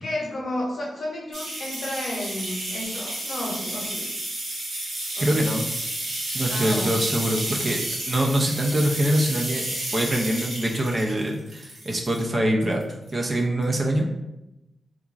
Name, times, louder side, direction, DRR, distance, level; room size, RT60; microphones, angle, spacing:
voice 1, 0.0-4.1 5.1-5.4 6.5-6.9, left 1 dB, 55° left, -4 dB, 0.8 m, -32 dB
sound 1, 1.3-12.3 12.7-13.3 13.6-13.7, right 1 dB, 80° right, 1.1 m, -31 dB
voice 2, 5.2-5.7 6.3-9.7 9.9-12.8 13.1-14.1, right 1 dB, 30° right, 1 dB, 0.3 m, -24 dB
2.9 x 2.3 x 2.4 m, 0.94 s
wide cardioid pair, 145°, 0 cm